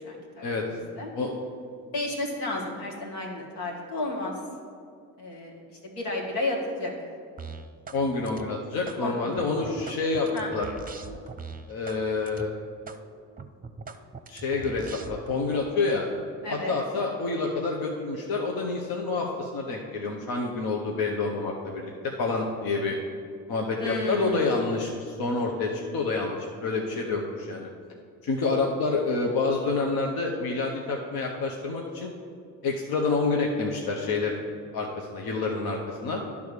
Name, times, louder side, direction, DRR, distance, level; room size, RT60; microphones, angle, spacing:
voice 1, 0.0-1.1 1.9-4.3 5.2-6.9 9.0-9.8 10.3-10.5 16.4-16.7 23.8-24.6, left 2 dB, 85° left, -2 dB, 1.7 m, -33 dB
sound 1, 7.4-8.0 8.3-9.0 9.4-12.0 12.3-12.5 12.9-13.0 13.4-15.4, right 5 dB, 20° right, 0.7 m, -41 dB
voice 2, 7.9-10.7 11.7-12.5 14.3-16.1 16.5-23.0 23.5-27.7 28.2-32.1 32.6-34.4 34.7-36.2, left 3 dB, 65° left, 0 dB, 1.0 m, -28 dB
10.5 x 3.5 x 6.6 m, 2.3 s
supercardioid pair, 50°, 39 cm